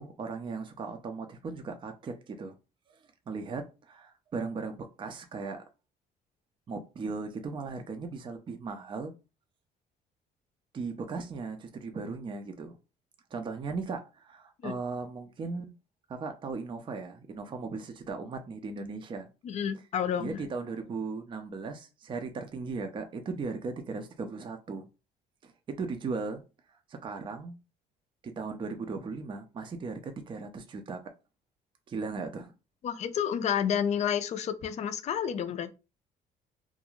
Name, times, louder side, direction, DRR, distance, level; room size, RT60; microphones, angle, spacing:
voice 1, 0.0-2.5 2.9-5.6 6.7-9.1 10.7-12.8 13.3-15.7 16.1-19.3 20.2-24.9 25.4-26.4 26.9-27.6 28.2-31.0 31.9-32.5, right 4 dB, 30° right, 0.4 m, -37 dB
voice 2, 19.4-20.4 32.8-35.7, left 8 dB, 40° left, 0.4 m, -30 dB
2.4 x 2.1 x 3.0 m
cardioid pair, 110°, 17 cm